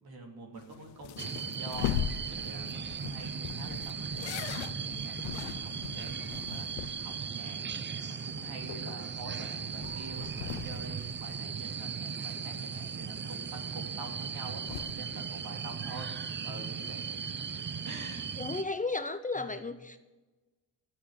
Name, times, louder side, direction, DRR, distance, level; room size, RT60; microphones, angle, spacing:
voice 1, 0.0-18.3 19.3-19.6, right 2 dB, 60° right, 2 dB, 3.8 m, -47 dB
sound 1, 0.6-7.3 7.5-7.6 8.0-8.1 8.5-12.0 12.3-13.5 14.3-15.0, left 12 dB, 90° left, 0.8 m, -40 dB
sound 2, 1.2-18.6, right 6 dB, 25° right, 0.7 m, -37 dB
voice 2, 18.4-20.0, left 3 dB, 20° left, 10 dB, 0.9 m, -34 dB
13.5 x 7.7 x 10.0 m, 1.1 s
cardioid pair, 85°, 41 cm